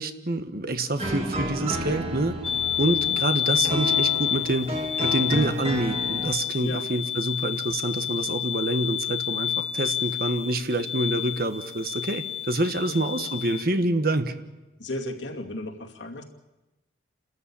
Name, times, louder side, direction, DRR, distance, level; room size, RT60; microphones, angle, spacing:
voice 1, 0.0-2.4 2.8-4.7 5.0-14.3, right 1 dB, 50° right, 9 dB, 1.3 m, -27 dB
sound 1, 1.0-6.4, equal, 30° right, 2.5 m, -32 dB
sound 2, 2.4-13.6, left 10 dB, 30° left, 0.7 m, -29 dB
voice 2, 14.8-16.2, left 1 dB, 75° left, 1 dB, 2.5 m, -34 dB
30.0 x 13.5 x 8.6 m, 1.0 s
head